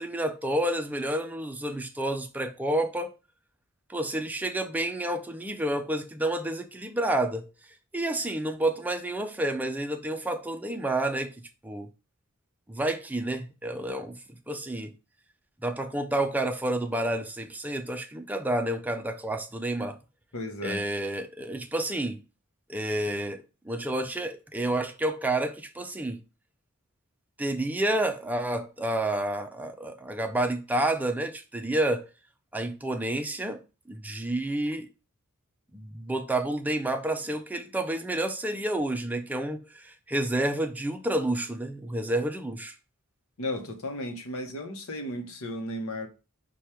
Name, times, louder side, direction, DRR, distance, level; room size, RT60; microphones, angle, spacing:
voice 1, 0.0-3.1 3.9-7.5 7.9-11.3 11.6-11.9 12.7-14.2 14.5-14.9 15.6-20.0 20.6-22.2 22.7-26.2 27.4-32.1 32.5-33.6 33.9-34.9 35.7-42.7, right 1 dB, 10° right, 0.4 m, -29 dB
voice 2, 20.3-20.8 43.4-46.1, left 1 dB, 70° left, 0.9 m, -34 dB
4.8 x 2.3 x 4.3 m
head